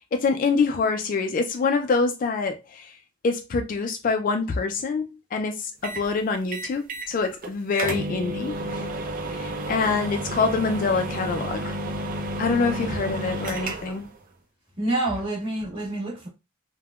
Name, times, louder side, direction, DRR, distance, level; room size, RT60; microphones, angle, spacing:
voice 1, 0.1-3.0 3.2-8.8 9.3-11.8 12.4-14.1, left 4 dB, 40° left, 0.3 m, -25 dB
sound 1, 5.8-6.1 6.5-7.1 7.4-7.5 7.8-14.1, right 1 dB, 45° right, 0.4 m, -31 dB
voice 2, 14.8-16.3, right 2 dB, 25° right, 1.3 m, -28 dB
3.5 x 2.1 x 2.3 m
head